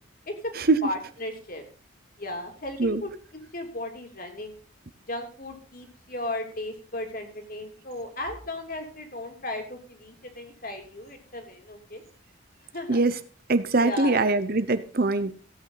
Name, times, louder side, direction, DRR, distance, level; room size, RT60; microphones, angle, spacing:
voice 1, 0.8-1.6 2.2-3.1 3.5-4.6 5.1-12.0 12.7-13.0 13.8-14.2, left 1 dB, 45° left, 4 dB, 3.1 m, -35 dB
voice 2, 13.5-15.4, right 3 dB, 45° right, 13 dB, 0.9 m, -22 dB
16.0 x 8.9 x 4.0 m, 0.41 s
head